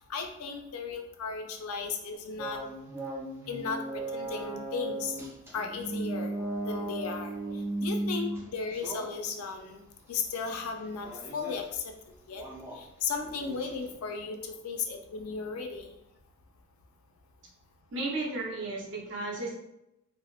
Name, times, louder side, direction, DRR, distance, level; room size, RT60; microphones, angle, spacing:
voice 1, 0.0-2.7 3.5-5.1 5.5-6.3 6.6-7.3 7.8-9.8 10.1-11.9 12.3-12.4 12.7-15.9, left 5 dB, 85° left, 4 dB, 0.4 m, -35 dB
sound 1, 2.4-8.4 8.7-9.1 10.3-10.4 11.0-11.5 12.3-12.8 13.2-13.9, right 1 dB, 10° right, 0.3 m, -36 dB
voice 2, 17.9-19.5, right 2 dB, 60° right, -2 dB, 0.6 m, -34 dB
2.7 x 2.0 x 2.3 m, 0.86 s
head